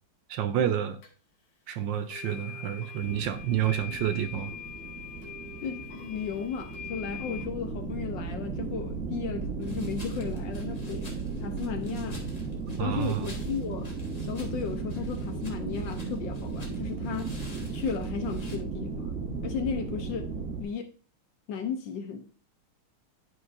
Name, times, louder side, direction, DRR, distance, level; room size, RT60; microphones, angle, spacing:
voice 1, 0.3-1.0 1.7-4.5 12.8-13.3, right 10 dB, 75° right, 1.2 m, -29 dB
sound 1, 1.0-1.1 2.1-7.4, left 8 dB, 85° left, 2.2 m, -43 dB
sound 2, 3.0-20.6, right 4 dB, 40° right, 1.2 m, -35 dB
voice 2, 5.6-11.1 11.4-12.2 12.8-13.9 14.2-17.3 17.7-20.3 20.6-20.9 21.5-22.2, left 7 dB, 70° left, 1.3 m, -35 dB
sound 3, 9.6-18.6, left 2 dB, 25° left, 1.1 m, -51 dB
11.0 x 5.2 x 2.5 m
omnidirectional pair, 2.3 m